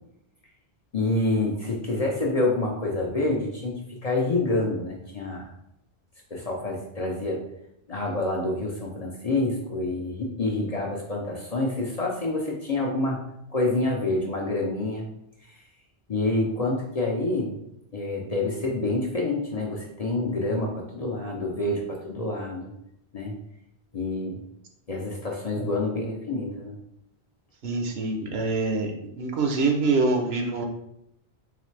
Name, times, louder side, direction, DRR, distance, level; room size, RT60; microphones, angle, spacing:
voice 1, 0.9-5.4 6.3-7.4 7.9-13.2 13.5-15.1 15.4-15.6 16.1-17.6 17.9-22.7 23.1-23.4 23.9-24.4 24.9-26.8, left 2 dB, 45° left, -1 dB, 0.5 m, -27 dB
voice 2, 27.6-28.9 29.2-30.7, right 3 dB, 70° right, 3 dB, 0.9 m, -25 dB
3.9 x 3.2 x 3.2 m, 0.80 s
omnidirectional pair, 1.1 m